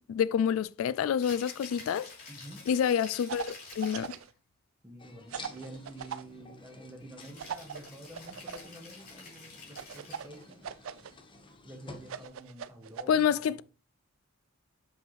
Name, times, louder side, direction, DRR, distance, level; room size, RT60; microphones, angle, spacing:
voice 1, 0.1-2.1 2.7-4.1 13.1-13.6, left 8 dB, 80° left, 0.3 m, -28 dB
Rattle (instrument), 1.1-4.3 7.2-10.4, left 4 dB, 45° left, 3.9 m, -49 dB
voice 2, 2.3-2.6 4.8-10.7 11.6-13.2 13.5-13.6, right 1 dB, 10° right, 1.8 m, -48 dB
sound 1, 3.3-4.3 5.3-6.2 7.4-8.7 9.7-11.1 12.0-13.0, right 7 dB, 75° right, 0.4 m, -40 dB
sound 2, 5.0-12.3, left 3 dB, 25° left, 0.9 m, -52 dB
7.3 x 5.5 x 3.2 m
head